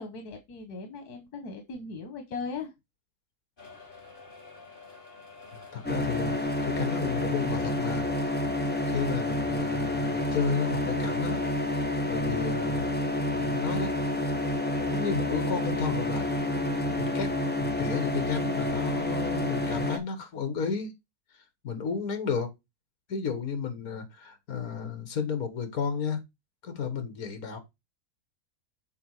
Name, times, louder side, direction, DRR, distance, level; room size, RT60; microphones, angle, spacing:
voice 1, 0.0-2.7, left 4 dB, 90° left, 1.6 m, -38 dB
sound 1, 3.6-12.1, left 4 dB, 35° left, 2.2 m, -48 dB
voice 2, 5.7-8.1 8.9-11.4 12.1-12.9 13.3-13.9 14.9-16.3 17.0-17.3 17.6-20.9 21.3-22.5 23.1-26.2 26.6-27.6, left 6 dB, 70° left, 1.8 m, -33 dB
sound 2, 5.8-20.0, left 1 dB, 10° left, 0.7 m, -29 dB
6.9 x 4.0 x 4.7 m
omnidirectional pair, 1.6 m